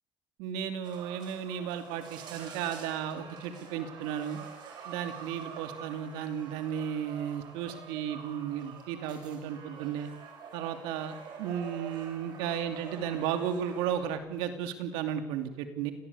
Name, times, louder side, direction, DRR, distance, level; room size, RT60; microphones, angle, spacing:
voice 1, 0.4-4.4 4.8-10.1 10.5-15.9, right 9 dB, 90° right, 8 dB, 2.7 m, -34 dB
sound 1, 0.8-14.1, right 6 dB, 65° right, 6.6 m, -47 dB
25.5 x 19.0 x 8.5 m, 1.1 s
supercardioid pair, 85°, 8 cm